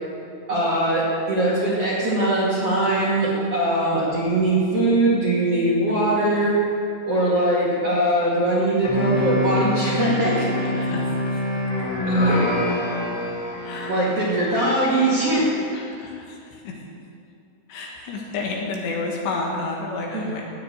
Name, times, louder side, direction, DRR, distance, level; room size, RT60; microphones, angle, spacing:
voice 1, 0.5-6.5 7.0-10.5 12.1-12.4 13.9-15.5 20.1-20.3, right 1 dB, 40° right, -7 dB, 2.7 m, -21 dB
sound 1, 8.8-14.8, left 1 dB, 45° left, 2.7 m, -25 dB
voice 2, 10.6-11.1 13.6-14.0 14.5-14.6 15.7-16.2 17.7-20.4, left 3 dB, 70° left, -1 dB, 3.6 m, -30 dB
17.5 x 6.6 x 8.9 m, 2.6 s
omnidirectional pair, 5.5 m